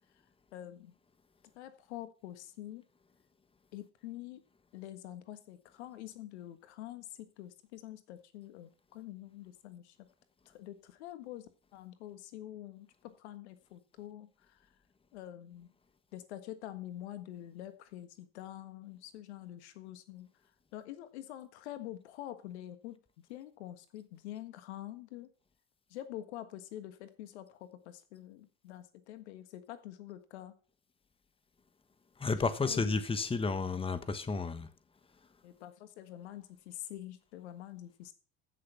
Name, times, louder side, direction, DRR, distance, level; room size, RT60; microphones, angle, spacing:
voice 1, 0.5-0.9 1.5-2.8 3.7-4.4 4.7-10.0 10.4-14.7 15.1-15.7 16.1-20.3 20.7-23.0 23.3-25.3 25.9-30.5 32.3-32.9 35.4-38.1, left 13 dB, 80° left, 1.6 m, -46 dB
voice 2, 32.2-34.7, left 4 dB, 15° left, 1.2 m, -32 dB
15.0 x 6.7 x 5.7 m
hypercardioid pair, 80°, 33 cm